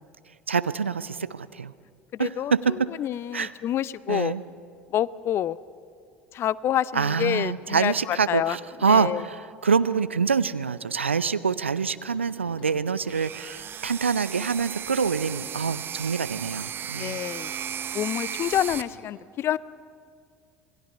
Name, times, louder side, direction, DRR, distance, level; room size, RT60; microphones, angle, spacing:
voice 1, 0.5-1.7 2.2-2.9 3.3-3.5 4.1-4.4 6.9-17.2, right 5 dB, 80° right, 16 dB, 0.5 m, -26 dB
voice 2, 2.1-2.5 3.0-4.3 4.9-5.6 6.3-8.6 8.9-9.2 17.0-17.5 17.9-19.6, left 11 dB, 40° left, 20 dB, 0.6 m, -27 dB
sound 1, 12.1-13.3 14.8-19.0, left 5 dB, 55° left, 2.4 m, -54 dB
sound 2, 13.1-18.8, right 8 dB, 35° right, 1.0 m, -35 dB
27.5 x 19.0 x 6.9 m, 2.2 s
figure-of-eight pair, 65°, 6 cm